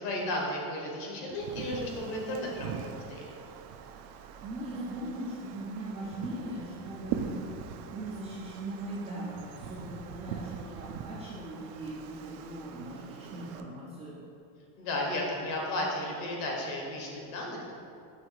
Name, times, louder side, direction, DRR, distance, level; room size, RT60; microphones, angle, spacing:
voice 1, 0.0-3.2 14.8-17.7, left 1 dB, 60° left, -1 dB, 1.3 m, -34 dB
Wind, 1.3-13.6, right 7 dB, 75° right, 0.6 m, -42 dB
voice 2, 4.4-14.1, right 1 dB, 15° right, -9 dB, 0.3 m, -39 dB
6.4 x 3.2 x 4.7 m, 2.6 s
cardioid pair, 175°, 45 cm